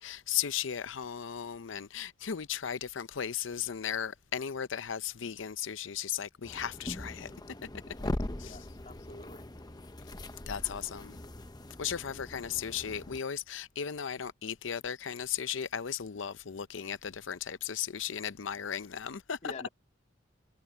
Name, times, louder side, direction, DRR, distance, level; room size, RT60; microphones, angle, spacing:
voice 1, 0.0-7.3 8.4-8.6 10.5-11.2 11.8-19.5, left 8 dB, 80° left, 0.6 m, -36 dB
sound 1, 6.4-13.2, left 1 dB, 20° left, 0.9 m, -41 dB
voice 2, 8.4-9.5 19.4-19.7, left 2 dB, 40° left, 2.7 m, -46 dB
head